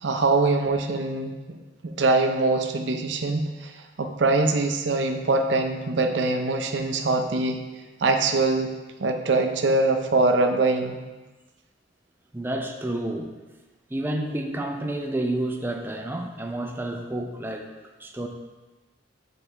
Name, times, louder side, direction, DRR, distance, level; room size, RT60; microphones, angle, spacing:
voice 1, 0.0-1.6 1.8-3.7 4.0-7.6 8.0-8.7 9.0-11.0, right 3 dB, 70° right, 5 dB, 0.6 m, -23 dB
voice 2, 12.3-13.3 13.9-17.7 18.0-18.3, right 1 dB, 10° right, 3 dB, 0.5 m, -30 dB
7.0 x 4.1 x 3.3 m, 1.2 s
head